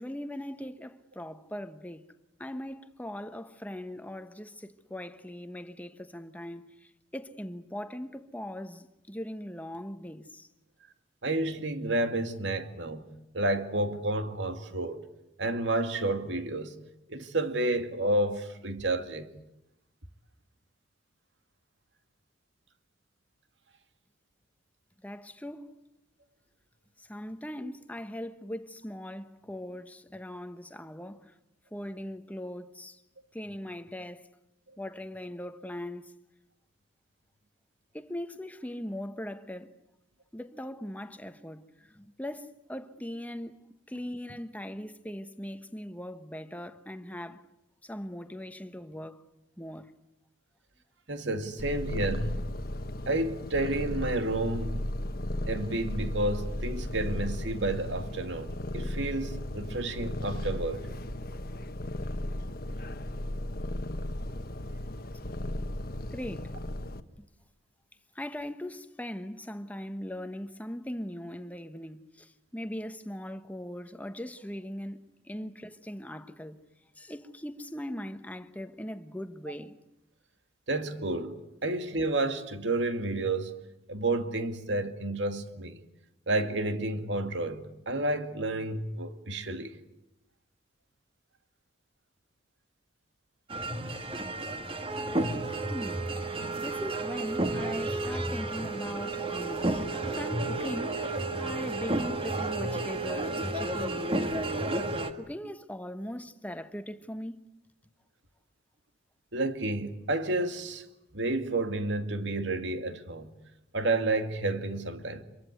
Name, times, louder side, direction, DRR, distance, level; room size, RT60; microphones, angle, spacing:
voice 1, 0.0-2.1 2.4-10.5 25.0-25.7 27.0-31.4 31.7-33.0 33.3-34.3 34.8-36.1 37.9-39.7 40.3-43.6 43.9-47.4 47.8-49.2 49.6-49.9 66.1-66.6 67.2-67.3 68.1-76.6 77.0-79.8 95.5-104.6 105.2-107.4, left 1 dB, 10° left, 1.1 m, -40 dB
voice 2, 11.2-15.0 15.4-16.7 17.1-19.3 51.1-52.4 53.1-54.8 55.5-60.8 80.7-81.4 81.6-83.6 83.9-85.8 86.3-89.8 95.3-95.4 109.3-110.9 111.1-113.3 113.7-115.2, right 2 dB, 70° right, 2.2 m, -30 dB
Purr, 51.6-67.0, left 1 dB, 50° left, 1.3 m, -35 dB
sound 1, 93.5-105.1, right 2 dB, 30° right, 1.8 m, -32 dB
26.5 x 23.0 x 9.4 m
head